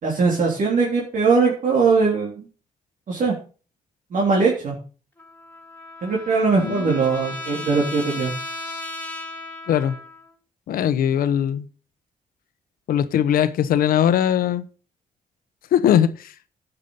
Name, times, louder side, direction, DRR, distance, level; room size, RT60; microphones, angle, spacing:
voice 1, 0.0-2.5 3.1-3.3 4.1-4.7 6.0-8.3, right 4 dB, 65° right, 3.5 m, -20 dB
Trumpet, 5.2-10.3, left 2 dB, 15° left, 2.9 m, -35 dB
voice 2, 6.6-7.0 9.7-10.0 10.7-11.7 12.9-14.6 15.7-16.3, left 9 dB, 85° left, 1.0 m, -20 dB
10.5 x 8.4 x 5.5 m
cardioid pair, 80°, 14 cm